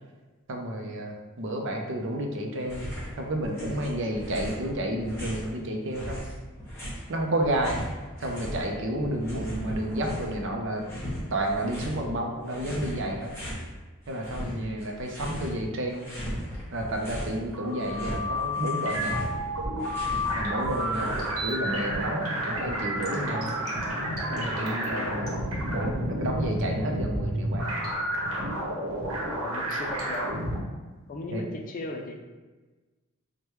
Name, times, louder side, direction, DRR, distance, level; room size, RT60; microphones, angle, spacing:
voice 1, 0.5-2.8 3.2-6.2 7.1-7.8 8.2-10.8 11.3-13.3 14.1-16.1 16.7-19.2 20.3-23.5 24.3-25.3 25.7-27.7 28.1-28.2 31.3-31.4, right 1 dB, 60° right, 2 dB, 0.6 m, -31 dB
sound 1, 2.6-3.1 3.4-5.5 5.9-8.6 8.9-10.4 10.8-12.0 12.5-13.6 14.0-15.6 15.9-17.4 17.7-21.6, equal, 15° left, 1.1 m, -37 dB
sound 2, 9.8-11.7, equal, 15° right, 0.7 m, -45 dB
sound 3, 17.3-30.6, equal, 80° right, 1.0 m, -30 dB
voice 2, 29.4-30.5 31.1-32.2, left 2 dB, 40° left, 3 dB, 0.4 m, -37 dB
4.8 x 2.2 x 3.0 m, 1.3 s
head